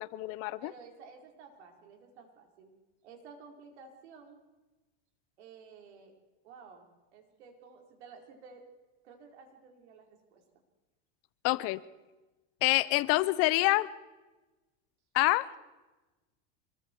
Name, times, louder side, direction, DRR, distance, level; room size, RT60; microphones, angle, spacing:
voice 1, 0.0-0.7 11.4-11.8 12.6-13.9 15.1-15.5, left 20 dB, 45° left, 18 dB, 0.7 m, -27 dB
voice 2, 0.6-2.7 3.0-4.4 5.4-6.1 6.4-8.6 9.0-10.4, right 5 dB, 80° right, 2 dB, 4.5 m, -53 dB
26.0 x 22.0 x 4.6 m, 1.1 s
supercardioid pair, 145°, 33 cm